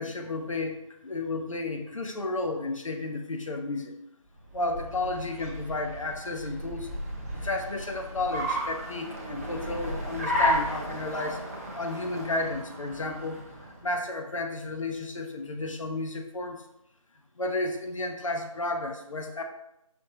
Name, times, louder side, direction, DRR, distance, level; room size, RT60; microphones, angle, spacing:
voice 1, 0.0-4.0 4.5-6.9 7.3-11.4 11.7-16.6 17.4-19.4, left 2 dB, 65° left, 4 dB, 0.7 m, -32 dB
Car, 4.4-13.9, equal, 25° right, 0.6 m, -33 dB
5.1 x 2.9 x 2.9 m, 0.84 s
figure-of-eight pair, 160°, 18 cm